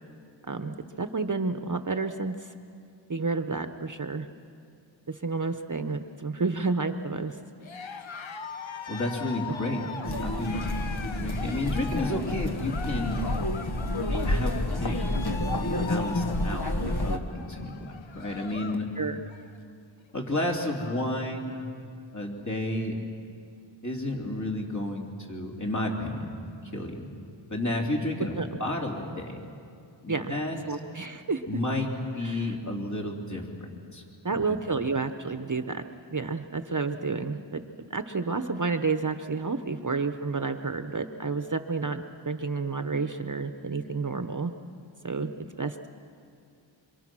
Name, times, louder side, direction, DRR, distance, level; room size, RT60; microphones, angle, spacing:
voice 1, 0.4-2.5 3.1-4.3 5.1-7.4 19.0-19.2 28.4-28.5 30.1-30.3 30.7-31.4 32.2-32.5 34.2-35.8 36.1-44.5 45.0-45.9, right 4 dB, 40° right, 8 dB, 1.0 m, -30 dB
Cheering, 7.6-18.9 19.2-19.6 20.0-20.1 20.3-21.1, left 5 dB, 75° left, 1.2 m, -41 dB
voice 2, 8.9-9.9 10.2-10.7 11.0-13.2 14.2-15.0 15.9-18.9 20.1-21.7 22.1-23.0 23.8-26.3 26.7-27.1 27.5-29.4 30.0-30.6 31.5-34.4, left 1 dB, 35° left, 0 dB, 3.5 m, -31 dB
sound 1, 10.0-17.2, left 1 dB, 55° left, 1.4 m, -29 dB
27.0 x 25.5 x 6.2 m, 2.3 s
wide cardioid pair, 50°, 47 cm